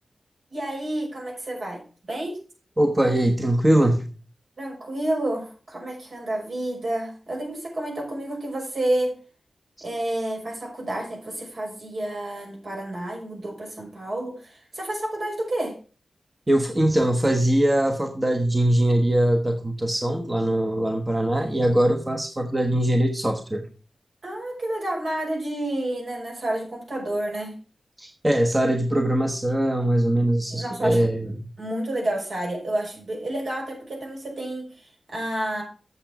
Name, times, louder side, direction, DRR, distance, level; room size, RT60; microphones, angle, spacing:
voice 1, 0.5-1.8 2.1-2.4 4.6-9.2 9.8-15.8 24.2-27.6 30.5-31.3 31.6-35.6, right 1 dB, 65° right, 0 dB, 5.7 m, -30 dB
voice 2, 2.8-4.1 16.5-23.7 28.0-31.5, right 1 dB, 20° right, 4 dB, 1.1 m, -22 dB
8.3 x 6.9 x 5.9 m, 0.36 s
wide cardioid pair, 90°, 0 cm